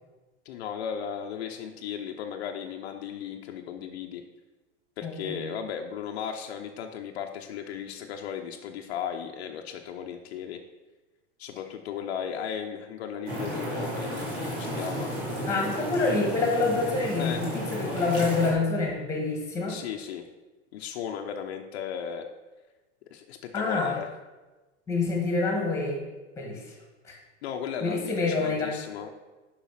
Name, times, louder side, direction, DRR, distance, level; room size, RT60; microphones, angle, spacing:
voice 1, 0.4-4.2 5.0-10.6 11.4-15.1 17.2-17.4 19.7-20.3 20.7-22.3 23.1-24.1 27.4-29.1, left 8 dB, 65° left, 4 dB, 0.8 m, -36 dB
voice 2, 5.0-5.4 15.5-19.8 23.5-23.9 24.9-26.0 26.4-26.6 27.0-27.2 27.8-28.7, left 3 dB, 10° left, 1 dB, 1.5 m, -27 dB
sound 1, 13.3-18.5, equal, 35° right, 2.9 m, -33 dB
7.2 x 5.6 x 5.7 m, 1.2 s
supercardioid pair, 165°, 36 cm